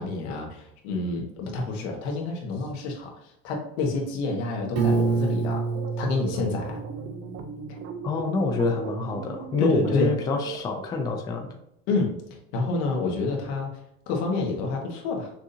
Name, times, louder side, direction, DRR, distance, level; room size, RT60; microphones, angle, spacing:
voice 1, 0.0-5.7 6.0-6.8 9.6-10.1 11.9-12.2 12.5-13.7 14.1-15.3, left 3 dB, 90° left, 0 dB, 1.4 m, -28 dB
Piano, 4.8-7.7, right 5 dB, 85° right, 1.6 m, -27 dB
sound 1, 5.5-10.6, right 6 dB, 40° right, 0.6 m, -38 dB
voice 2, 8.0-11.5, left 3 dB, 15° left, 3 dB, 0.3 m, -26 dB
6.0 x 2.6 x 2.7 m, 0.81 s
cardioid pair, 160°, 33 cm